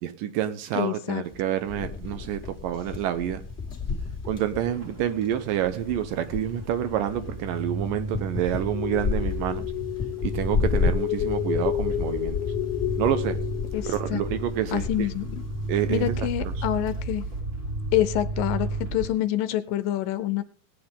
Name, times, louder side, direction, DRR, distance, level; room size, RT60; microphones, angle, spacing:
voice 1, 0.0-3.4 4.3-9.7 10.2-12.4 13.0-13.4 13.9-15.1 15.7-16.6, right 11 dB, 75° right, 2.3 m, -28 dB
voice 2, 0.7-1.2 13.7-14.2 14.7-15.4 15.9-17.2 17.9-20.4, left 13 dB, 80° left, 2.2 m, -27 dB
sound 1, 1.2-17.4, left 5 dB, 25° left, 1.8 m, -33 dB
sound 2, 4.7-19.1, right 2 dB, 25° right, 1.8 m, -34 dB
sound 3, 8.7-15.2, left 13 dB, 60° left, 1.7 m, -31 dB
18.5 x 9.2 x 3.7 m
omnidirectional pair, 4.3 m